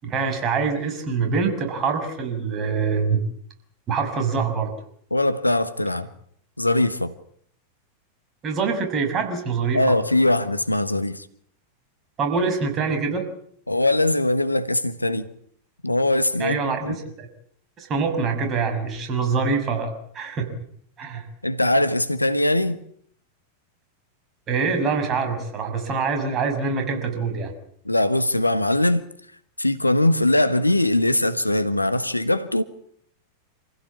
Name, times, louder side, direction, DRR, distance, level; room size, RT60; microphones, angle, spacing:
voice 1, 0.0-3.2 3.9-4.7 8.4-9.9 12.2-13.3 16.4-17.3 17.8-20.5 21.0-21.3 24.5-27.5, right 5 dB, 30° right, 6.2 m, -25 dB
voice 2, 5.1-6.1 6.6-7.1 9.7-11.3 13.7-15.3 15.8-16.6 16.8-16.9 21.4-22.8 27.8-29.1 29.6-32.6, left 1 dB, 85° left, 1.4 m, -21 dB
27.5 x 16.0 x 8.4 m
figure-of-eight pair, 90°, 0 cm